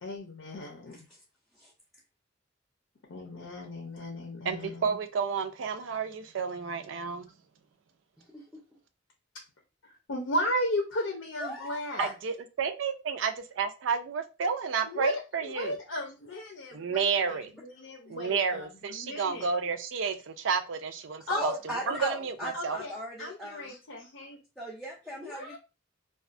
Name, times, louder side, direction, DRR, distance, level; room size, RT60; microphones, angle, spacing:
voice 1, 0.0-1.1 3.1-5.0 9.8-12.1 14.8-19.5 21.3-21.4 21.8-22.0 22.5-24.4 25.2-25.6, left 1 dB, 90° left, 1 dB, 0.6 m, -35 dB
voice 2, 4.4-7.3 12.0-15.8 16.7-17.5 18.1-21.5 21.9-22.8, right 6 dB, 70° right, 8 dB, 0.4 m, -31 dB
voice 3, 8.3-8.6 11.4-12.1 18.1-18.2 21.3-23.7 24.6-25.6, equal, ahead, -4 dB, 0.4 m, -38 dB
2.4 x 2.3 x 2.4 m, 0.30 s
head